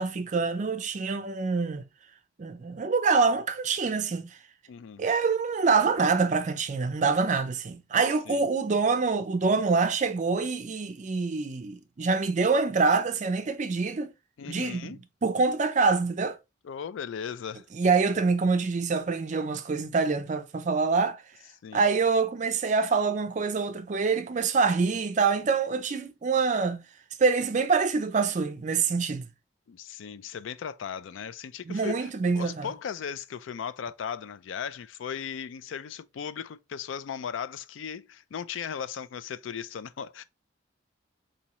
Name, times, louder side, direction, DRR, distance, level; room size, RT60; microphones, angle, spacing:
voice 1, 0.0-1.8 2.4-4.3 5.0-14.1 14.5-14.9 15.2-16.4 17.7-21.2 21.7-26.8 27.2-29.3 31.7-32.7, right 4 dB, 40° right, 0.4 m, -25 dB
voice 2, 4.7-5.1 8.3-8.4 14.4-15.0 16.6-17.6 21.6-21.8 29.7-40.2, left 7 dB, 75° left, 0.3 m, -37 dB
4.1 x 2.7 x 2.9 m
head